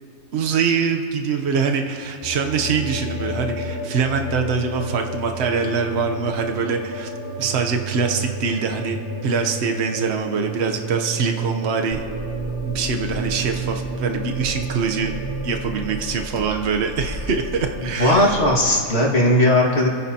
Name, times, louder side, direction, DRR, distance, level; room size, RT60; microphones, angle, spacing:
voice 1, 0.3-7.1 7.4-12.0 12.6-15.2 15.4-18.3, right 5 dB, 55° right, 4 dB, 1.1 m, -24 dB
sound 1, 2.2-18.2, right 1 dB, 20° right, 1.7 m, -32 dB
Car / Engine, 11.9-18.5, left 1 dB, 35° left, 1.6 m, -35 dB
voice 2, 18.0-19.9, left 1 dB, 50° left, -3 dB, 2.2 m, -17 dB
27.0 x 9.8 x 2.9 m, 2.3 s
omnidirectional pair, 1.4 m